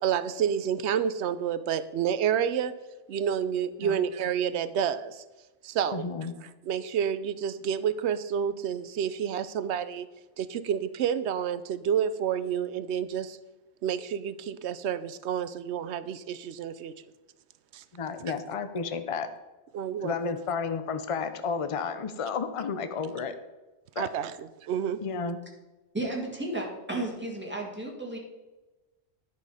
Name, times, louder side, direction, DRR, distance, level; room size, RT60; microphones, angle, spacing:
voice 1, 0.0-2.7 3.1-5.2 5.6-6.1 6.4-10.1 10.4-13.4 13.8-16.9 17.7-17.8 19.7-20.1 24.0-25.0, right 8 dB, 80° right, 13 dB, 0.9 m, -29 dB
voice 2, 5.9-6.4 17.9-19.3 20.0-23.4 24.0-24.1 25.0-25.4, left 5 dB, 35° left, 10 dB, 0.6 m, -32 dB
voice 3, 25.9-28.2, right 2 dB, 10° right, -1 dB, 1.8 m, -33 dB
10.5 x 5.5 x 4.9 m, 1.1 s
omnidirectional pair, 1.1 m